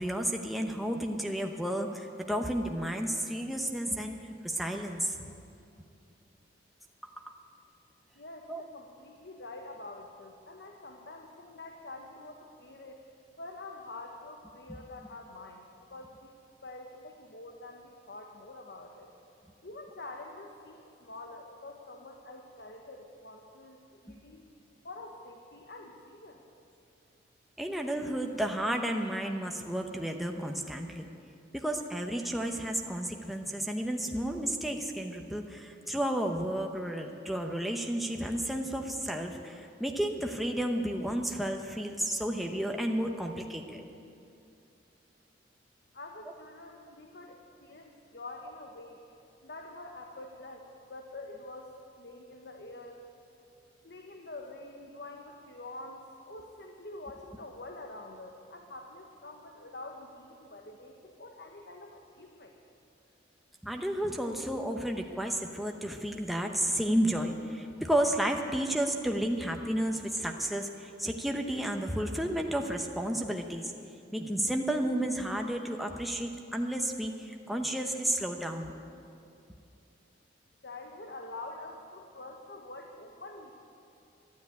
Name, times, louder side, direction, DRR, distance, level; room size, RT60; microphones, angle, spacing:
voice 1, 0.0-5.2 7.0-7.3 8.5-8.6 24.1-24.2 27.6-31.1 31.5-43.8 63.6-73.7 74.1-78.8, right 1 dB, ahead, 2 dB, 0.8 m, -32 dB
voice 2, 8.1-13.0 13.4-15.6 15.9-16.4 16.6-19.1 19.6-24.4 24.8-26.4 45.9-49.0 49.4-53.0 53.8-62.5 80.6-83.5, left 2 dB, 60° left, 3 dB, 1.0 m, -46 dB
12.5 x 10.5 x 9.4 m, 2.6 s
head